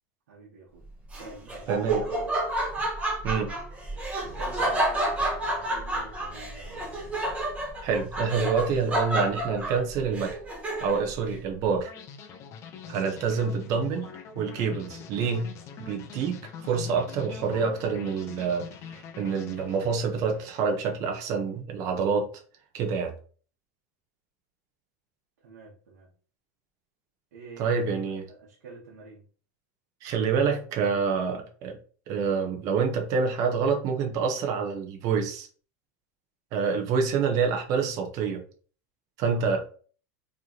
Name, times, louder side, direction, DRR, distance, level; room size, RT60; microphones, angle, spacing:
voice 1, 0.3-0.8 1.2-2.4 4.2-7.1 12.9-13.1 25.4-26.1 27.3-29.2 39.3-39.5, right 4 dB, 85° right, 1.3 m, -47 dB
Laughter, 1.1-11.1, right 1 dB, 15° right, 1.0 m, -30 dB
voice 2, 1.7-2.0 3.2-3.5 7.8-10.4 10.8-11.9 12.9-14.1 14.3-15.5 15.8-18.7 18.9-22.3 22.7-23.1 27.6-28.2 30.0-31.8 32.1-35.5 36.5-38.4 39.2-39.6, right 5 dB, 40° right, 1.0 m, -27 dB
sound 1, 11.9-20.9, left 6 dB, 30° left, 0.6 m, -44 dB
4.5 x 3.2 x 2.8 m
supercardioid pair, 150°, 9 cm